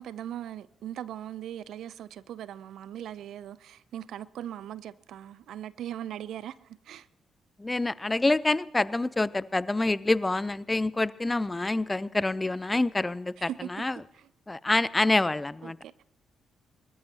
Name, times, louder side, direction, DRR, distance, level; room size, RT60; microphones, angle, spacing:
voice 1, 0.0-6.6 6.8-7.1 13.4-13.7 14.2-14.3 15.6-15.9, right 11 dB, 65° right, 0.6 m, -39 dB
voice 2, 7.6-14.0 14.5-15.8, left 2 dB, 20° left, 0.7 m, -27 dB
22.5 x 21.0 x 2.9 m
figure-of-eight pair, 40°, 0 cm